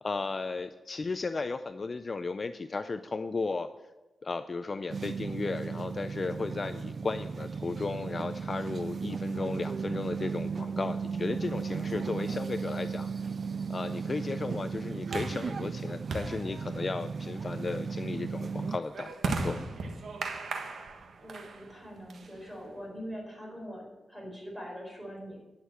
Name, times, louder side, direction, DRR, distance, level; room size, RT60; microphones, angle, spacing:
voice 1, 0.0-3.7 4.2-13.4 13.7-19.7, left 3 dB, 40° left, 10 dB, 0.4 m, -35 dB
sound 1, 4.9-18.8, right 5 dB, 55° right, 0.3 m, -35 dB
sound 2, 12.9-22.8, right 3 dB, 80° right, 1.3 m, -39 dB
voice 2, 21.2-25.4, equal, ahead, -2 dB, 4.7 m, -43 dB
11.0 x 6.5 x 7.3 m, 1.1 s
wide cardioid pair, 110°, 0 cm